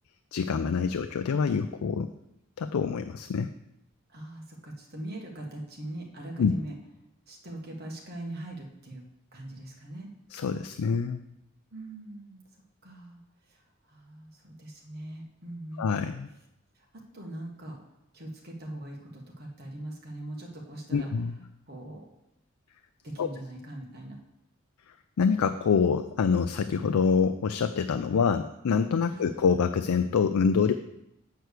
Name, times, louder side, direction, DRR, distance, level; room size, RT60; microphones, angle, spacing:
voice 1, 0.3-2.1 2.6-3.5 6.4-6.5 10.3-11.2 15.8-16.3 20.9-21.4 23.2-23.3 25.2-30.7, left 5 dB, 85° left, 9 dB, 0.4 m, -26 dB
voice 2, 4.1-6.7 7.3-9.0 9.3-10.1 11.7-15.9 16.7-17.8 18.1-21.2 21.7-22.1 23.0-24.2 29.1-29.3, right 1 dB, 45° right, 0 dB, 1.6 m, -41 dB
8.3 x 4.6 x 6.5 m, 0.85 s
head